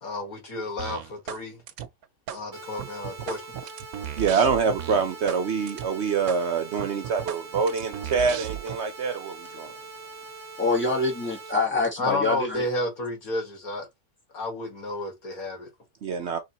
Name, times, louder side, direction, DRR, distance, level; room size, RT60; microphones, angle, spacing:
voice 1, 0.0-1.6 2.3-3.4 12.0-13.9 14.3-15.7, left 2 dB, 75° left, 2.1 m, -31 dB
sound 1, 0.8-1.4 1.7-2.4 2.8-5.4 5.7-5.9 6.3-6.4 6.8-8.8, right 10 dB, 80° right, 1.1 m, -36 dB
sound 2, 2.5-11.5, right 4 dB, 25° right, 0.8 m, -43 dB
voice 2, 4.2-9.7 16.0-16.4, right 5 dB, 60° right, 0.8 m, -25 dB
voice 3, 10.6-12.6, left 3 dB, 10° left, 1.8 m, -25 dB
3.6 x 3.4 x 4.0 m
omnidirectional pair, 1.5 m